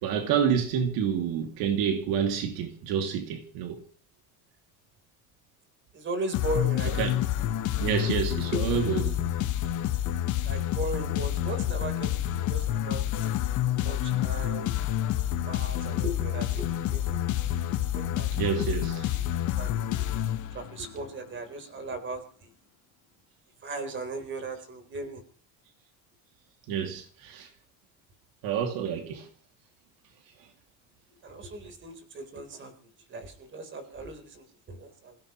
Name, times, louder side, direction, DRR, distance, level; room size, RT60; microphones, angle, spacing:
voice 1, 0.0-3.8 6.9-7.1 7.8-9.2 18.3-19.2 26.7-27.5 28.4-29.3, right 7 dB, 80° right, 2.7 m, -28 dB
voice 2, 5.9-7.0 8.5-8.6 10.4-13.5 13.8-14.8 15.5-17.2 17.9-18.7 19.1-22.5 23.6-25.2 31.2-35.2, right 2 dB, 35° right, 4.0 m, -38 dB
sound 1, 6.3-20.9, left 12 dB, 55° left, 1.3 m, -28 dB
28.0 x 16.5 x 3.1 m
cardioid pair, 150°, 35 cm